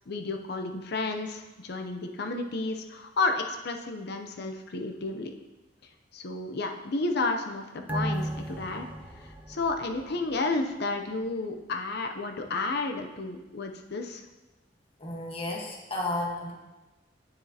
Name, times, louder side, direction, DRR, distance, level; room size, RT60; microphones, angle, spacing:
voice 1, 0.1-5.3 6.1-8.9 9.2-14.2, left 3 dB, 60° left, 5 dB, 0.6 m, -32 dB
sound 1, 7.9-10.8 11.1-11.2, right 1 dB, 10° right, 0.6 m, -35 dB
voice 2, 15.0-16.5, left 2 dB, 30° left, -1 dB, 1.3 m, -32 dB
9.1 x 7.1 x 2.8 m, 1.1 s
head